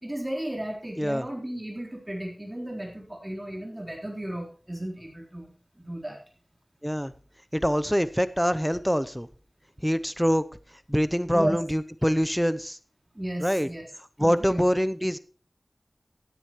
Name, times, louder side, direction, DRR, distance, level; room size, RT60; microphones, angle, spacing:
voice 1, 0.0-6.2 11.3-11.6 13.1-13.9 14.2-14.6, right 1 dB, 20° right, 0 dB, 3.9 m, -34 dB
voice 2, 1.0-1.3 6.8-7.1 7.5-9.3 9.8-10.4 10.9-12.8 13.4-13.7 14.2-15.2, equal, ahead, 14 dB, 0.7 m, -24 dB
17.0 x 10.0 x 3.1 m, 0.37 s
wide cardioid pair, 60°, 0 cm